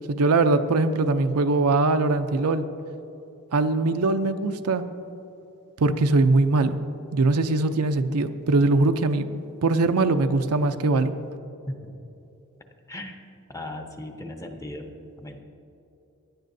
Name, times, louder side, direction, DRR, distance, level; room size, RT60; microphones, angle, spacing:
voice 1, 0.1-2.6 3.5-4.8 5.8-6.8 7.1-9.3 9.6-11.1, right 3 dB, 80° right, 9 dB, 0.5 m, -21 dB
voice 2, 13.5-14.9 15.2-15.4, left 1 dB, 15° left, 4 dB, 0.7 m, -36 dB
17.0 x 11.0 x 2.7 m, 2.8 s
head